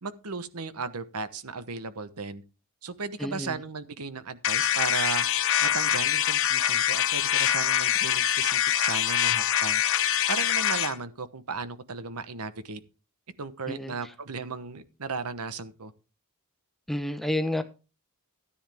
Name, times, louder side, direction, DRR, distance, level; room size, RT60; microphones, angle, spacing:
voice 1, 0.0-2.4 2.8-5.3 5.6-9.8 10.3-12.8 13.4-15.9, right 4 dB, 85° right, 1.1 m, -35 dB
voice 2, 3.2-3.6 13.7-13.9 16.9-17.6, left 1 dB, ahead, 0.9 m, -30 dB
sound 1, 4.4-10.9, left 11 dB, 65° left, 0.8 m, -24 dB
13.5 x 9.9 x 3.5 m
head